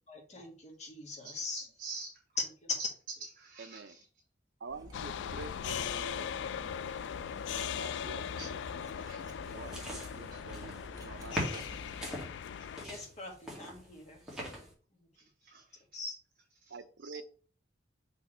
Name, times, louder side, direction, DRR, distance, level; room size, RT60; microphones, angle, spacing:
voice 1, 0.1-1.6 2.6-2.7 12.8-14.2 15.9-16.2, left 4 dB, 40° left, 1 dB, 1.7 m, -41 dB
voice 2, 1.2-2.1 3.4-4.0 7.4-7.5 8.3-8.6 9.0-9.5 10.3-10.5 12.6-13.0 14.3-14.4 15.2-15.8 16.6-16.8 17.0-17.2, right 4 dB, 45° right, -4 dB, 1.5 m, -49 dB
voice 3, 3.6-4.0 4.6-6.3 7.5-8.3 9.5-11.8 16.7-17.2, right 4 dB, 75° right, 11 dB, 0.6 m, -47 dB
Cutlery silverware, 4.6-12.4, right 1 dB, 20° right, 1.3 m, -51 dB
sound 1, 4.9-12.9, left 8 dB, 75° left, 0.3 m, -39 dB
sound 2, 9.4-10.9 11.3-12.3 12.8-14.7, equal, 5° right, 2.0 m, -41 dB
5.9 x 4.5 x 4.4 m, 0.42 s
head